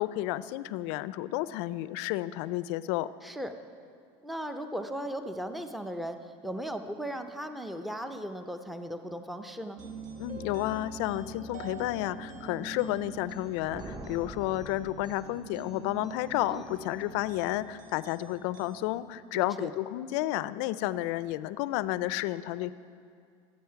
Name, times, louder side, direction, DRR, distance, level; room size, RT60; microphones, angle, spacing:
voice 1, 0.0-3.1 10.2-22.7, left 15 dB, 75° left, 16 dB, 0.4 m, -31 dB
voice 2, 3.2-3.5 4.2-9.8 16.5-16.6 19.3-19.7, equal, ahead, 8 dB, 0.6 m, -37 dB
sound 1, 9.8-19.0, right 3 dB, 55° right, 1.5 m, -45 dB
sound 2, 13.3-15.8, right 2 dB, 20° right, 0.9 m, -45 dB
12.0 x 8.6 x 5.7 m, 2.3 s
supercardioid pair, 110°, 15 cm